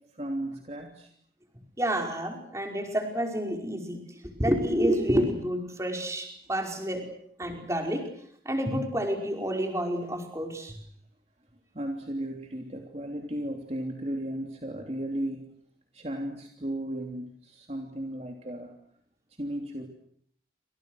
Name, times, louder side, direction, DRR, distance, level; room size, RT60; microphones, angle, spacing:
voice 1, 0.1-1.1 11.7-15.5 15.9-18.7 19.4-19.9, right 1 dB, 35° right, 2 dB, 3.1 m, -35 dB
voice 2, 1.8-4.0 4.4-7.0 7.4-8.1 8.5-10.8, equal, 15° right, 3 dB, 5.3 m, -29 dB
29.5 x 27.0 x 6.5 m, 0.66 s
head